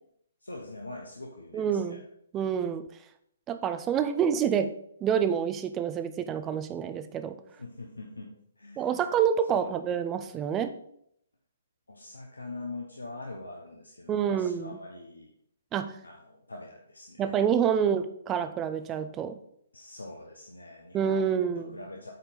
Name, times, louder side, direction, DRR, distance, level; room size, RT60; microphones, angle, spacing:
voice 1, 0.4-2.0 7.6-8.9 9.5-9.7 11.9-15.3 16.0-17.4 17.8-17.9 19.7-22.1, left 2 dB, 85° left, 0 dB, 1.1 m, -43 dB
voice 2, 1.5-2.0 2.3-2.8 3.5-4.7 5.0-7.4 8.8-10.8 14.1-14.7 15.7-16.0 17.2-19.4 20.9-21.8, right 8 dB, 20° right, 10 dB, 0.6 m, -27 dB
8.1 x 4.4 x 5.2 m, 0.70 s
figure-of-eight pair, 130°, 0 cm